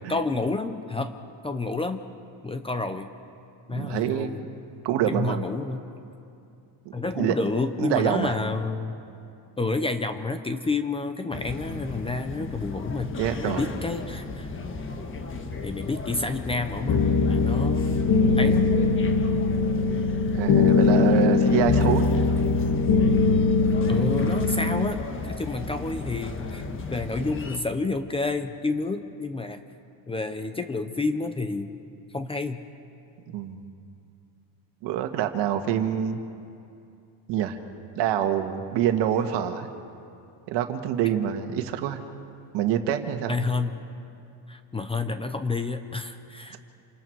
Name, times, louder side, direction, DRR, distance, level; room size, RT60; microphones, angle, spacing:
voice 1, 0.1-1.2 1.4-2.0 2.4-3.1 3.7-4.4 5.1-5.8 6.9-9.0 9.6-13.1 13.4-14.5 15.6-18.0 18.4-18.7 23.9-29.6 30.1-31.7 32.1-32.6 43.3-43.7 44.5-46.6, left 3 dB, 15° left, 8 dB, 0.6 m, -29 dB
voice 2, 3.7-4.3 4.8-5.4 7.2-7.3 7.8-8.3 13.2-13.7 20.3-22.2 33.3-33.7 34.8-36.2 37.3-37.6 38.0-39.7 40.5-42.0 42.5-43.4, right 10 dB, 70° right, 6 dB, 1.8 m, -26 dB
sound 1, 11.3-27.6, left 3 dB, 30° left, 1.4 m, -35 dB
sound 2, 16.9-24.9, left 4 dB, 50° left, 1.4 m, -21 dB
28.0 x 27.0 x 4.7 m, 2.6 s
cardioid pair, 155°, 44 cm